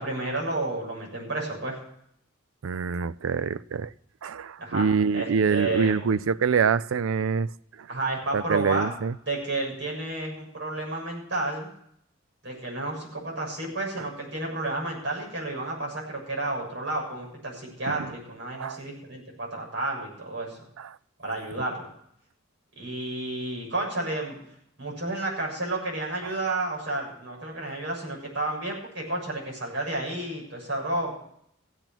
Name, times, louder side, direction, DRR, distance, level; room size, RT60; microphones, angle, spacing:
voice 1, 0.0-1.8 4.6-4.9 5.1-6.0 7.9-8.9 9.3-11.7 12.4-20.6 21.2-21.9 22.8-24.4 24.8-31.1, right 2 dB, 65° right, 7.1 m, -31 dB
voice 2, 2.6-3.9 4.2-7.5 7.8-7.9 8.3-9.1 17.9-18.1 18.5-18.8 20.8-21.0 26.2-26.3, right 6 dB, 90° right, 0.4 m, -26 dB
15.5 x 9.0 x 5.9 m
head